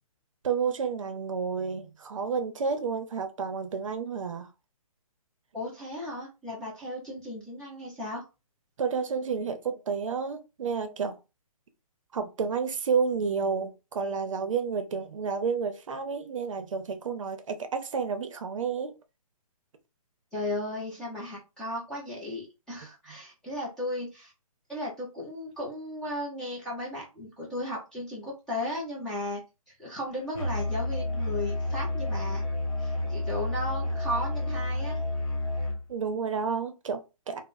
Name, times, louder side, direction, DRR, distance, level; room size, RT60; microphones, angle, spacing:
voice 1, 0.4-4.5 8.8-11.2 12.1-18.9 35.9-37.4, right 5 dB, 60° right, 0.6 m, -30 dB
voice 2, 5.5-8.2 20.3-24.3 24.7-29.4 29.8-32.4 32.8-35.0, left 1 dB, 5° left, 0.5 m, -35 dB
Musical instrument, 30.3-35.8, left 2 dB, 60° left, 1.2 m, -30 dB
3.6 x 2.1 x 2.5 m
hypercardioid pair, 165°, 19 cm